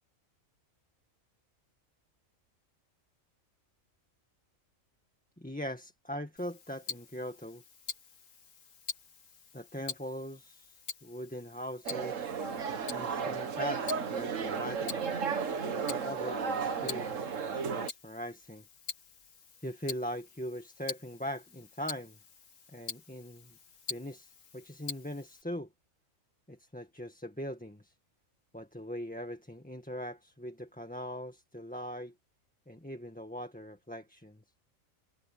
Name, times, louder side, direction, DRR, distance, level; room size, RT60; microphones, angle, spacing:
voice 1, 5.4-7.6 9.5-12.3 12.9-15.0 15.6-18.7 19.6-22.2 22.7-23.6 23.9-25.7 26.5-27.9 28.5-32.1 32.7-34.4, equal, 5° left, 1.8 m, -41 dB
Tick-tock, 6.4-25.4, left 5 dB, 70° left, 1.9 m, -46 dB
sound 1, 11.9-17.9, right 6 dB, 65° right, 1.7 m, -34 dB
omnidirectional pair, 1.4 m